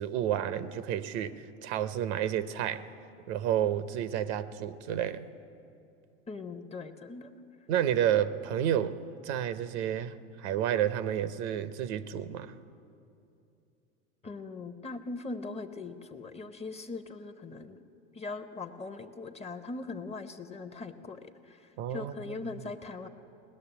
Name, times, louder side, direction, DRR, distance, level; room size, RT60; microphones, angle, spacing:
voice 1, 0.0-2.9 3.3-5.3 7.7-9.0 9.2-12.5 21.8-22.1, right 10 dB, 70° right, 13 dB, 0.8 m, -30 dB
voice 2, 6.3-7.3 14.2-17.8 18.1-23.1, left 3 dB, 20° left, 9 dB, 0.7 m, -40 dB
18.5 x 6.7 x 10.0 m, 2.7 s
hypercardioid pair, 100°, 35 cm